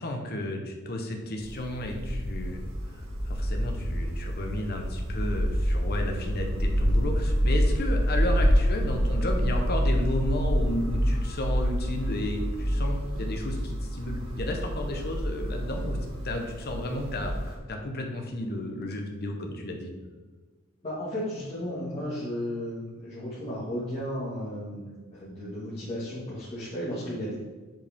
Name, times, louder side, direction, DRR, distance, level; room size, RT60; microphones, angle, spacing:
voice 1, 0.0-2.6 3.0-16.0 16.2-19.9, left 1 dB, 50° left, 2 dB, 0.9 m, -33 dB
sound 1, 1.4-17.5, equal, 80° right, 1.6 m, -27 dB
voice 2, 20.8-27.3, equal, 30° left, -10 dB, 1.7 m, -34 dB
7.6 x 4.9 x 3.5 m, 1.3 s
head